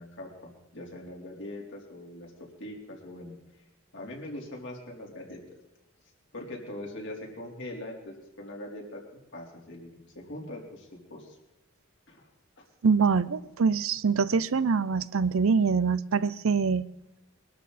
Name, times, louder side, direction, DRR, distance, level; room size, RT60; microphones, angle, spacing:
voice 1, 0.0-2.3 2.6-3.3 3.9-5.4 6.3-9.0 9.3-11.4 12.1-12.3 12.6-12.7, left 1 dB, 60° left, -1 dB, 3.9 m, -42 dB
voice 2, 12.8-16.8, right 5 dB, 75° right, 18 dB, 0.6 m, -24 dB
23.5 x 12.5 x 4.2 m, 0.97 s
head